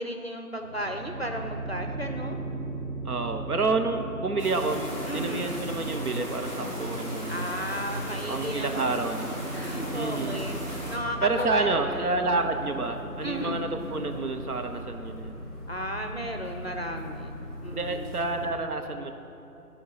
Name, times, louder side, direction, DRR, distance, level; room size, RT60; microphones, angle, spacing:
voice 1, 0.0-2.4 5.1-5.7 7.3-8.8 9.5-12.2 13.2-13.7 15.7-18.3, equal, 45° left, 4 dB, 0.5 m, -34 dB
sound 1, 0.6-18.5, right 1 dB, 55° right, 1.3 m, -38 dB
voice 2, 3.0-7.5 8.3-9.4 9.9-10.4 11.2-15.4 17.7-19.1, right 3 dB, 70° right, 6 dB, 0.8 m, -29 dB
sound 2, 4.4-11.0, equal, 30° right, 1.7 m, -36 dB
sound 3, 10.6-18.5, left 1 dB, 10° right, 1.4 m, -46 dB
11.5 x 4.6 x 5.7 m, 2.9 s
figure-of-eight pair, 165°, 46 cm